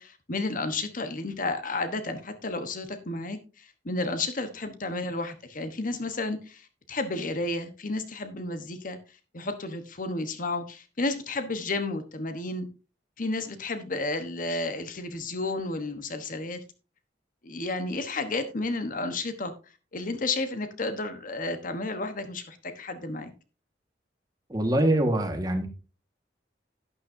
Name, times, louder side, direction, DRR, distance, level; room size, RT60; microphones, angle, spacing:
voice 1, 0.0-9.0 9.3-12.7 13.2-16.6 17.4-19.5 19.9-23.3, left 2 dB, 50° left, 9 dB, 1.1 m, -32 dB
voice 2, 24.5-25.7, right 1 dB, 20° right, 5 dB, 1.6 m, -24 dB
11.5 x 9.6 x 2.7 m, 0.33 s
head